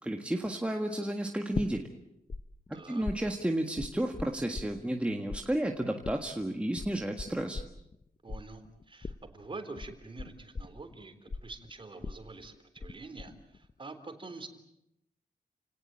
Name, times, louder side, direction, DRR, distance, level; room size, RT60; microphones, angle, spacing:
voice 1, 0.0-1.9 2.7-7.6, right 1 dB, 5° right, 3 dB, 1.7 m, -32 dB
sound 1, 1.5-2.4 2.7-5.0 5.3-12.9 13.2-13.7, left 4 dB, 35° left, 0.9 m, -39 dB
voice 2, 2.7-3.1 8.2-14.5, right 3 dB, 35° right, 7 dB, 3.7 m, -46 dB
29.5 x 18.5 x 8.9 m, 0.83 s
wide cardioid pair, 105°, 16 cm